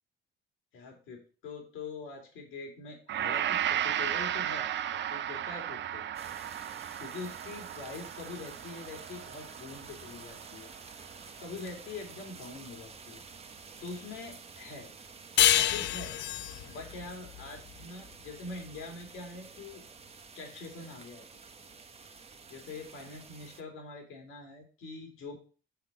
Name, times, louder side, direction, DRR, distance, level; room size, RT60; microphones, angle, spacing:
voice 1, 0.7-6.0 7.0-10.7 11.4-13.2 13.8-14.9 15.5-16.1 16.6-19.8 20.3-21.3 22.5-25.4, left 3 dB, 90° left, 2 dB, 2.5 m, -44 dB
Gong, 3.1-11.5 11.9-12.0, right 10 dB, 65° right, 0.6 m, -35 dB
sound 1, 6.1-23.6, right 5 dB, 30° right, 0.9 m, -50 dB
sound 2, 15.4-18.5, left 12 dB, 65° left, 0.4 m, -28 dB
6.2 x 5.8 x 5.9 m, 0.37 s
cardioid pair, 90°, 20 cm